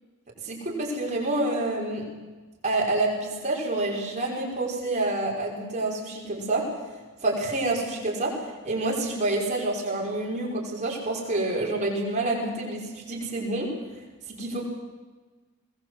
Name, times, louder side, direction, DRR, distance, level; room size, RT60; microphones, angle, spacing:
voice 1, 0.4-2.1 2.6-6.6 7.2-8.3 8.6-13.7 14.3-14.6, right 2 dB, 35° right, -3 dB, 5.5 m, -28 dB
21.5 x 20.0 x 8.0 m, 1.3 s
head